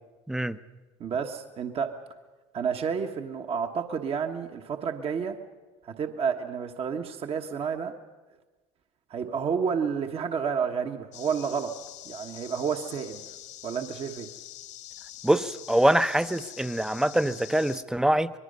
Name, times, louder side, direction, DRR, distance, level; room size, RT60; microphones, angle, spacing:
voice 1, 0.3-0.6 15.2-18.3, right 1 dB, 5° right, 14 dB, 0.7 m, -24 dB
voice 2, 1.0-1.9 2.5-5.4 5.8-7.9 9.1-11.7 12.0-13.2 13.6-14.3, right 6 dB, 45° right, 5 dB, 1.3 m, -30 dB
sound 1, 11.1-17.8, left 13 dB, 65° left, 1.5 m, -45 dB
25.5 x 21.0 x 5.4 m, 1.2 s
supercardioid pair, 85°, 14 cm